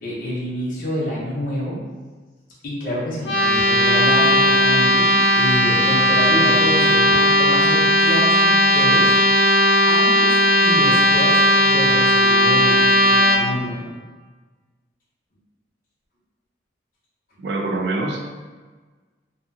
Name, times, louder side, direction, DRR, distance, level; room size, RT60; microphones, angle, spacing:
voice 1, 0.0-1.8 2.6-9.1 9.6-10.3 10.6-13.9, equal, 45° left, -6 dB, 0.7 m, -27 dB
sound 1, 3.2-13.4, equal, 90° left, 0.5 m, -16 dB
voice 2, 17.4-18.3, right 2 dB, 70° right, 2 dB, 0.4 m, -25 dB
2.7 x 2.5 x 2.6 m, 1.4 s
head